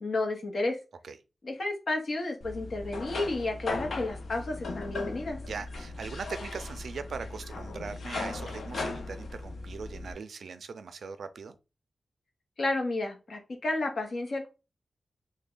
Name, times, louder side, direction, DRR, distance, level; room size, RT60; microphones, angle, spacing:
voice 1, 0.0-0.8 1.4-5.4 12.6-14.5, left 2 dB, 50° left, 0.8 m, -31 dB
sound 1, 2.4-10.1, left 3 dB, 85° left, 0.5 m, -38 dB
voice 2, 5.4-11.6, right 5 dB, 85° right, 0.4 m, -40 dB
3.3 x 2.1 x 3.7 m
wide cardioid pair, 170°, 0 cm